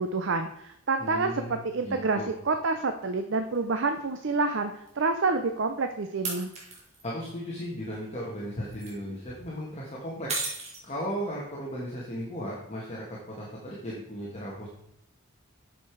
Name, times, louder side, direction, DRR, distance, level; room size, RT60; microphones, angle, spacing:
voice 1, 0.0-6.5, right 3 dB, 55° right, 7 dB, 0.6 m, -28 dB
voice 2, 1.0-2.3 6.7-10.4 10.8-14.7, equal, 30° left, -4 dB, 1.5 m, -36 dB
sound 1, 3.5-3.6 4.9-5.0 6.2-7.0 8.5-8.9 10.3-11.2, right 3 dB, 30° right, 2.4 m, -35 dB
8.4 x 6.8 x 4.6 m, 0.81 s
head